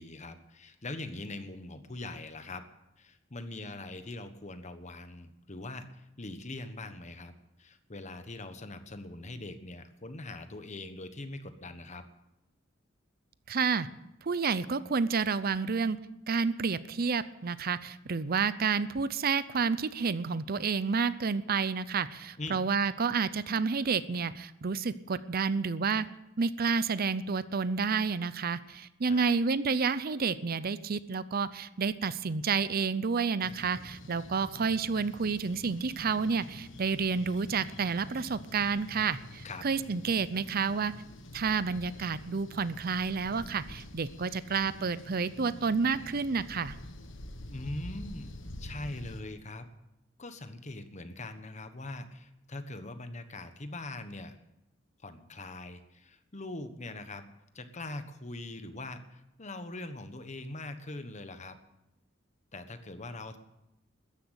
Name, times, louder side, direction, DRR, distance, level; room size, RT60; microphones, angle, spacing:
voice 1, 0.0-2.6 3.0-7.3 7.6-12.1 22.4-22.6 29.1-29.3 39.4-39.7 47.5-49.7 50.2-54.4 55.0-57.2 57.5-61.6 62.5-63.4, left 2 dB, 40° left, 9 dB, 1.3 m, -42 dB
voice 2, 13.5-13.9 14.2-16.0 16.3-26.1 26.4-40.9 41.3-46.8, right 5 dB, 50° right, 15 dB, 0.6 m, -30 dB
sound 1, 33.4-49.2, left 1 dB, 70° left, 1.5 m, -47 dB
14.0 x 10.5 x 8.2 m, 0.88 s
head